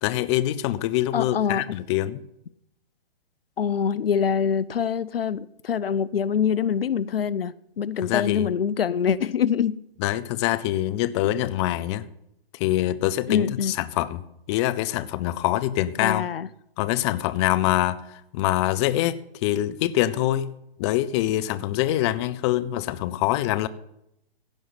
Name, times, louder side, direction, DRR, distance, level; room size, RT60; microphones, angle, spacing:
voice 1, 0.0-2.2 8.0-8.5 10.0-12.0 12.6-16.2 16.8-18.0 18.3-20.5 20.8-23.7, left 14 dB, 30° left, 14 dB, 0.7 m, -24 dB
voice 2, 1.1-1.8 3.6-9.8 13.3-13.7 16.0-16.5, left 7 dB, 75° left, 18 dB, 0.6 m, -24 dB
16.0 x 5.5 x 9.4 m, 0.79 s
figure-of-eight pair, 125°, 30 cm